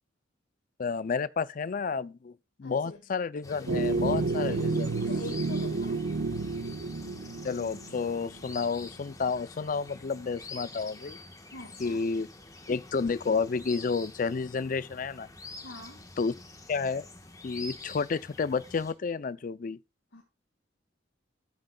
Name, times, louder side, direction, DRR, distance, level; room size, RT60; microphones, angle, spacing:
voice 1, 0.8-5.0 7.4-11.2 11.8-12.3 12.7-15.3 16.2-16.3 16.7-17.1 17.4-19.8, left 5 dB, 45° left, 0.4 m, -31 dB
voice 2, 2.6-3.0 5.0-6.0 11.5-12.1 15.6-16.0 20.1-20.2, left 2 dB, 75° left, 1.8 m, -44 dB
sound 1, 3.4-18.9, left 3 dB, 20° left, 1.2 m, -47 dB
sound 2, 3.7-8.3, right 3 dB, 70° right, 0.9 m, -30 dB
13.0 x 8.9 x 2.3 m
head